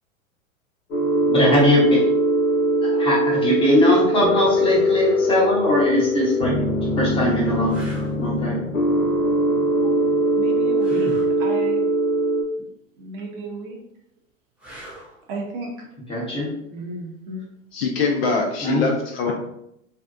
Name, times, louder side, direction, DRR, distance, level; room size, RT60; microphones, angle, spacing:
sound 1, 0.9-12.4, right 1 dB, 75° left, 0.8 m, -21 dB
voice 1, 1.3-2.0 2.8-6.5 7.0-7.8 8.2-8.6 16.1-16.5 18.6-18.9, left 1 dB, 15° left, -5 dB, 0.8 m, -20 dB
sound 2, 6.3-6.4 7.0-7.1 7.7-8.2 10.8-11.3 14.6-15.2 18.2-18.3, right 1 dB, 5° right, 0.4 m, -37 dB
voice 2, 10.3-11.9 13.0-13.8 15.3-15.9 16.7-17.5, right 2 dB, 40° right, 0 dB, 0.7 m, -34 dB
voice 3, 17.7-19.3, left 4 dB, 50° left, 2 dB, 0.5 m, -23 dB
2.6 x 2.1 x 2.4 m, 0.76 s
hypercardioid pair, 100°, 41 cm